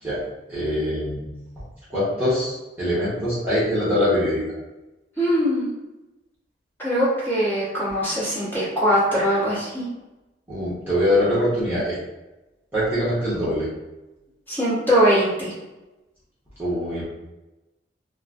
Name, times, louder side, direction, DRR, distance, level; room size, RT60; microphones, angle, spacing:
voice 1, 0.5-1.3 1.9-4.4 10.5-11.9 12.7-13.7 16.6-17.1, left 1 dB, 10° right, -12 dB, 1.2 m, -23 dB
voice 2, 5.2-5.7 6.8-9.8 14.5-15.5, equal, 10° left, -10 dB, 1.4 m, -21 dB
4.2 x 2.3 x 2.6 m, 1.0 s
head